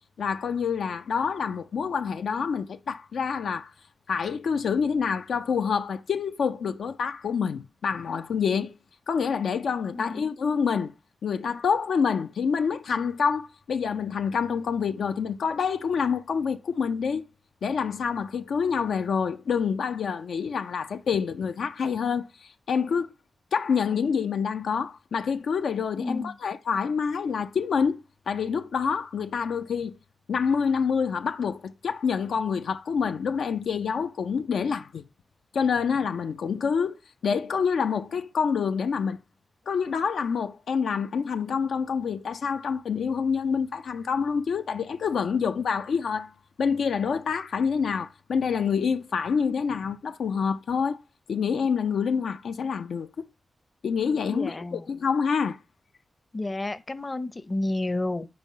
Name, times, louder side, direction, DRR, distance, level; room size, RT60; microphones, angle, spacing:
voice 1, 0.2-3.7 4.1-8.7 9.1-10.9 11.2-17.2 17.6-23.1 23.5-30.0 30.3-35.0 35.5-37.0 37.2-39.2 39.7-46.3 46.6-51.0 51.3-53.3 53.8-55.6, left 6 dB, 85° left, 0.4 m, -27 dB
voice 2, 9.9-10.2 26.0-26.3 54.3-54.8 56.3-58.3, left 2 dB, 30° left, 0.6 m, -31 dB
5.4 x 4.7 x 4.1 m
cardioid pair, 60°, 0 cm